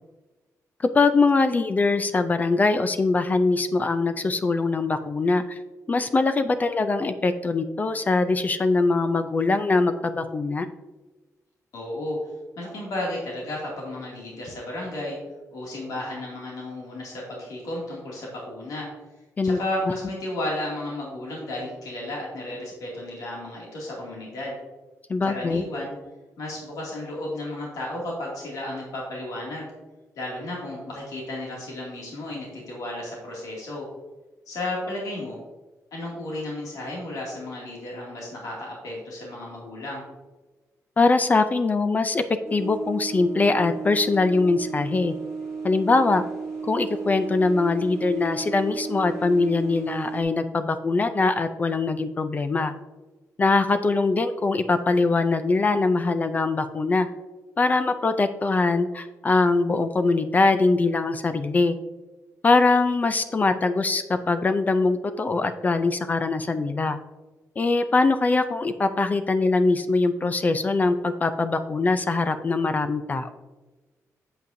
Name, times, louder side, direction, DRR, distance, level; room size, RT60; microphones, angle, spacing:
voice 1, 0.9-5.6 5.9-10.7 19.4-19.6 19.9-20.0 25.1-25.6 41.0-42.2 42.5-45.1 45.6-46.2 46.6-52.7 53.4-57.1 57.6-61.8 62.4-67.0 67.6-73.3, left 3 dB, 30° left, 11 dB, 0.4 m, -22 dB
voice 2, 11.7-12.2 12.6-15.2 15.5-18.9 19.4-24.6 25.2-25.9 26.4-29.7 30.2-33.8 34.5-35.4 35.9-40.0, left 1 dB, 85° left, -3 dB, 2.3 m, -33 dB
sound 1, 42.4-50.2, right 5 dB, 10° left, 1.8 m, -34 dB
8.2 x 7.6 x 2.6 m, 1.2 s
wide cardioid pair, 150°, 6 cm